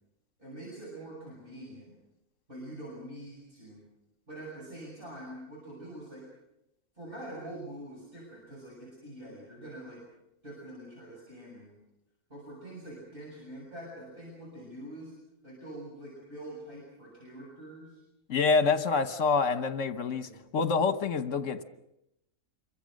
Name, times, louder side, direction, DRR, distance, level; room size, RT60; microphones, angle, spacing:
voice 1, 0.4-1.9 2.5-3.8 4.3-6.3 7.0-10.0 10.4-11.7 12.3-15.1 15.4-18.0 20.2-20.4, right 1 dB, 40° right, -5 dB, 7.4 m, -45 dB
voice 2, 18.3-21.6, left 4 dB, 65° left, 11 dB, 1.5 m, -27 dB
27.0 x 23.5 x 6.5 m, 0.86 s
omnidirectional pair, 1.4 m